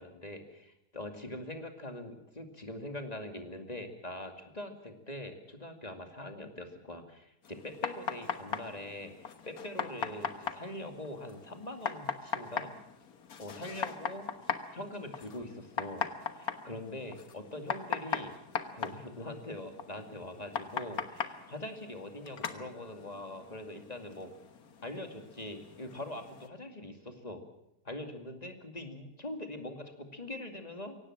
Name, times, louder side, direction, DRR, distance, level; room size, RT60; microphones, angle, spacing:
voice 1, 0.0-12.7 13.4-14.3 14.7-16.1 16.3-18.4 18.7-24.3 24.8-27.4 27.8-31.0, left 1 dB, 25° left, 5 dB, 2.5 m, -43 dB
sound 1, 7.4-26.5, left 6 dB, 70° left, 1.8 m, -40 dB
24.0 x 17.5 x 7.5 m, 0.83 s
omnidirectional pair, 1.7 m